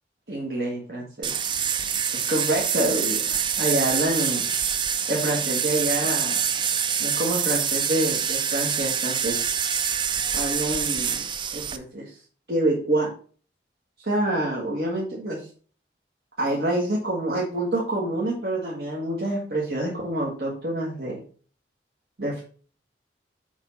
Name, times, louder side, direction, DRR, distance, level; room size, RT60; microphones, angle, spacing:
voice 1, 0.3-1.3 2.1-4.5 5.1-6.4 7.0-9.5 10.3-11.2 11.5-12.2 12.5-13.1 14.0-15.4 16.4-21.2 22.2-22.4, right 1 dB, 60° right, -4 dB, 1.7 m, -27 dB
sound 1, 1.2-11.8, right 7 dB, 25° right, 0.4 m, -26 dB
7.2 x 4.5 x 5.6 m, 0.43 s
head